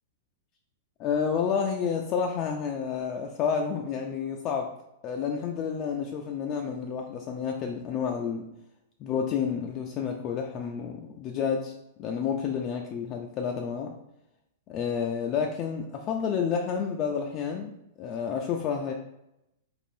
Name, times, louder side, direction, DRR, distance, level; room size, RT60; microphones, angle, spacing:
voice 1, 1.0-4.7 5.0-8.4 9.0-11.7 12.0-13.9 14.7-18.9, left 6 dB, 40° left, 1 dB, 0.3 m, -30 dB
3.2 x 2.5 x 2.6 m, 0.85 s
hypercardioid pair, 120°, 0 cm